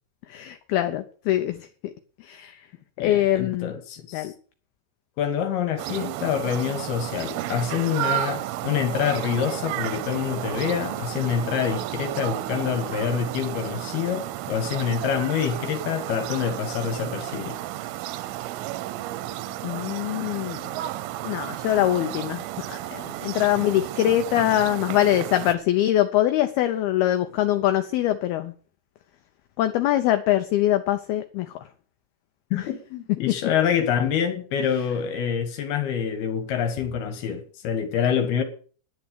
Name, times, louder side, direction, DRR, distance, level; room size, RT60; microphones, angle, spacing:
voice 1, 0.3-1.9 2.2-2.6 3.0-3.7 4.1-4.3 19.6-20.6 21.2-28.5 29.6-31.6, left 13 dB, 80° left, 2.2 m, -23 dB
voice 2, 3.0-4.3 5.2-17.6 32.5-38.4, left 8 dB, 65° left, 3.0 m, -26 dB
sound 1, 5.8-25.5, right 14 dB, 90° right, 3.4 m, -32 dB
10.5 x 9.4 x 6.8 m
omnidirectional pair, 5.5 m